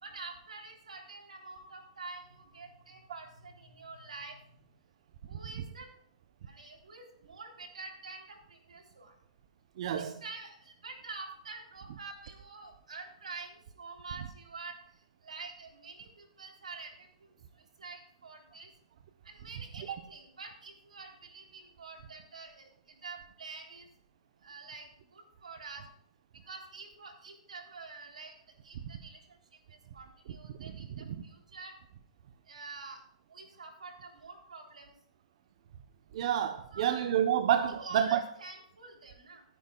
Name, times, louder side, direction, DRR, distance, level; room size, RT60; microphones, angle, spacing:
voice 1, 0.0-4.5 5.3-5.9 6.4-9.1 10.0-14.8 15.2-18.7 19.2-23.9 24.4-25.9 26.5-28.3 28.6-29.2 29.7-31.7 32.5-33.0 33.3-34.9 36.7-37.0 37.7-39.4, right 4 dB, 90° right, 3.7 m, -47 dB
voice 2, 9.8-10.2 30.6-31.2 36.1-38.2, right 10 dB, 60° right, 0.9 m, -29 dB
17.5 x 10.5 x 2.4 m
hypercardioid pair, 130°, 4 cm